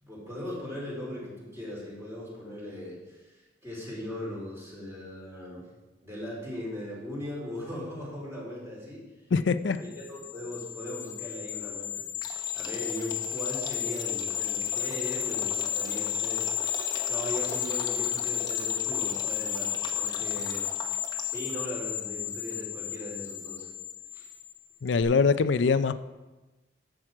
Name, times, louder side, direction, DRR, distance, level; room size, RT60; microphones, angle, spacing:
voice 1, 0.0-3.3 3.6-5.7 6.0-9.0 10.1-16.5 16.7-20.7 21.3-23.7 24.1-24.3, left 1 dB, 15° right, -5 dB, 3.9 m, -39 dB
voice 2, 9.3-9.8 24.8-25.9, left 5 dB, 80° left, 13 dB, 0.5 m, -23 dB
sound 1, 9.9-24.5 24.9-25.0, left 10 dB, 50° left, 1.4 m, -32 dB
sound 2, 12.2-21.5, left 3 dB, 25° left, 1.0 m, -42 dB
11.0 x 7.5 x 4.8 m, 1.1 s
head